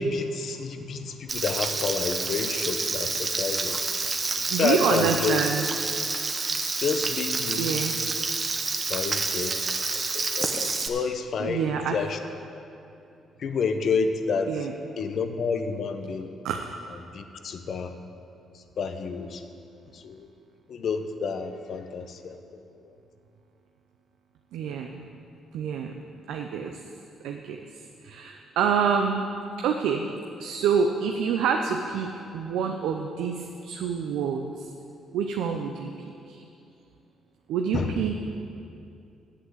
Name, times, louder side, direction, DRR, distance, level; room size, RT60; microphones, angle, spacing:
voice 1, 0.0-3.8 4.6-5.4 6.8-7.7 8.9-9.5 9.9-12.2 13.4-14.5 15.0-16.3 17.1-17.9 18.8-19.4 19.9-20.3 20.7-22.3 37.7-38.0, left 5 dB, 60° left, 8 dB, 0.8 m, -29 dB
Frying (food), 1.3-10.9, right 3 dB, 35° right, 0.8 m, -28 dB
voice 2, 4.3-5.7 7.6-7.9 10.9-11.0 11.4-12.0 14.5-14.7 16.4-16.6 24.5-25.1 25.5-25.9 26.3-26.8 27.2-27.6 28.0-29.2 29.6-30.1 30.4-34.7 35.1-35.9 36.2-36.4 37.5-38.2, right 6 dB, 85° right, 3 dB, 0.6 m, -27 dB
8.4 x 8.0 x 7.8 m, 2.6 s
cardioid pair, 90°, 0 cm